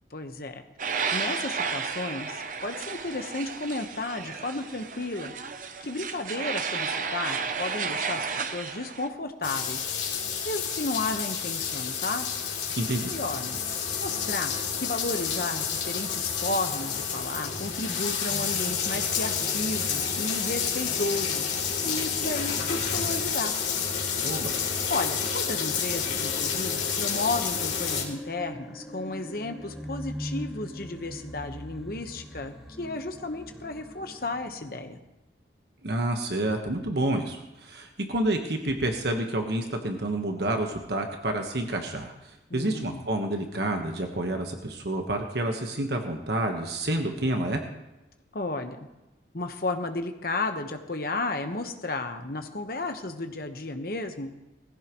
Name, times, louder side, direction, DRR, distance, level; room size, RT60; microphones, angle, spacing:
voice 1, 0.1-0.6 1.1-5.3 5.8-9.8 10.4-12.3 13.1-13.6 14.0-21.4 21.8-23.5 24.9-35.0 42.5-43.1 48.3-48.8 49.3-54.3, left 2 dB, 55° left, 6 dB, 1.2 m, -33 dB
sound 1, 0.8-9.1, right 5 dB, 45° right, 0.7 m, -32 dB
sound 2, 9.4-28.0, left 6 dB, 85° left, 3.0 m, -29 dB
voice 2, 12.8-13.1 24.2-24.6 35.8-42.1 42.5-47.6, right 1 dB, 65° right, 4 dB, 1.3 m, -29 dB
sound 3, 18.3-34.7, equal, ahead, 1.3 m, -43 dB
19.0 x 15.5 x 3.1 m, 0.98 s
head